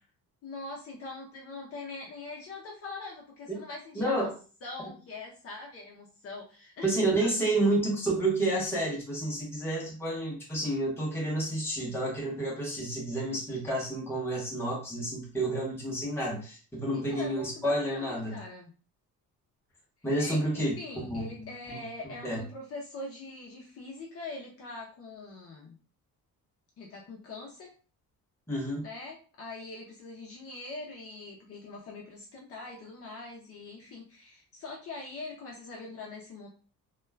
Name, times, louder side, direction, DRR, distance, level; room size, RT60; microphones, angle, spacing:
voice 1, 0.4-4.3 4.6-7.4 16.9-18.7 20.2-25.8 26.8-27.7 28.8-36.5, left 3 dB, 40° left, -1 dB, 0.6 m, -43 dB
voice 2, 3.9-4.3 6.8-18.4 20.0-21.8 22.2-22.4 28.5-28.8, right 1 dB, 5° left, -5 dB, 0.8 m, -30 dB
2.3 x 2.2 x 3.2 m, 0.37 s
cardioid pair, 180°, 34 cm